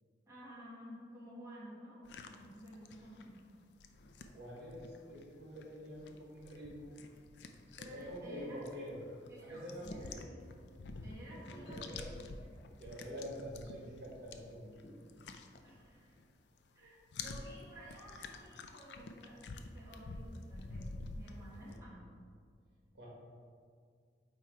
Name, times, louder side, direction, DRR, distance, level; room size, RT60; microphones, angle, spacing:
voice 1, 0.3-3.4 7.8-8.6 9.3-10.4 11.0-12.5 12.9-13.0 15.6-16.1 16.7-22.2, equal, 15° right, -9 dB, 1.5 m, -53 dB
sound 1, 2.1-16.3 16.6-21.8, left 3 dB, 85° left, 0.5 m, -50 dB
voice 2, 4.3-6.9 7.8-9.0 9.4-10.2 11.5-12.3 12.7-14.8 21.6-21.9 22.9-23.1, equal, 70° right, -5 dB, 1.6 m, -47 dB
sound 2, 10.0-10.3 11.3-12.0 13.1-13.4 14.8-15.1, equal, 30° left, 0.7 m, -54 dB
8.4 x 3.1 x 4.4 m, 2.2 s
head